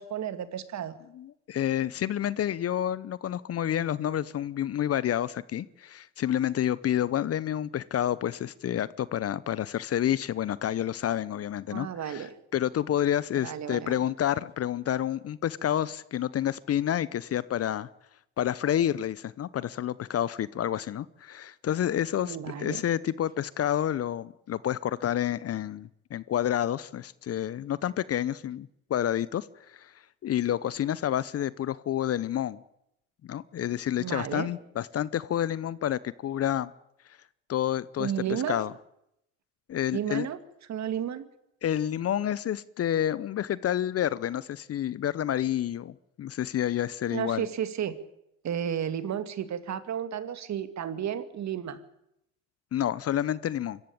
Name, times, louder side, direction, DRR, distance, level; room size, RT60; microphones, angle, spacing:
voice 1, 0.0-1.0 11.7-12.3 13.3-14.0 22.3-22.8 34.0-34.5 38.0-38.6 39.9-40.4 40.7-41.2 47.1-47.9 48.4-51.8, right 9 dB, 45° right, 2.2 m, -32 dB
voice 2, 1.1-17.9 18.4-29.9 30.2-32.6 33.2-36.7 37.5-38.7 39.7-40.3 41.6-47.4 52.7-53.8, left 11 dB, 40° left, 0.8 m, -29 dB
25.0 x 14.5 x 8.9 m
hypercardioid pair, 75°, 38 cm